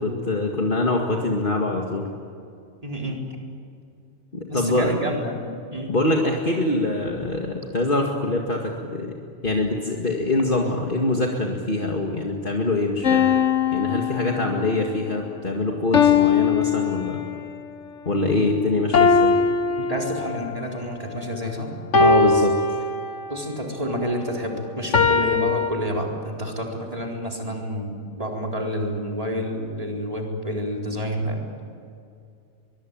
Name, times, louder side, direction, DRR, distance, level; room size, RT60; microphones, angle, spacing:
voice 1, 0.0-2.1 4.3-4.9 5.9-9.1 9.4-13.3 13.7-17.2 18.1-19.3 22.0-22.5, left 2 dB, 45° left, 0 dB, 2.3 m, -24 dB
voice 2, 2.8-3.2 4.5-5.4 5.7-5.9 18.1-18.4 19.8-21.7 23.3-31.4, equal, 30° right, 0 dB, 4.4 m, -29 dB
sound 1, 13.0-14.8 15.9-17.6 18.9-20.6 21.9-23.4 24.9-25.7, left 5 dB, 85° left, 1.8 m, -20 dB
23.5 x 23.0 x 9.0 m, 2.5 s
omnidirectional pair, 1.2 m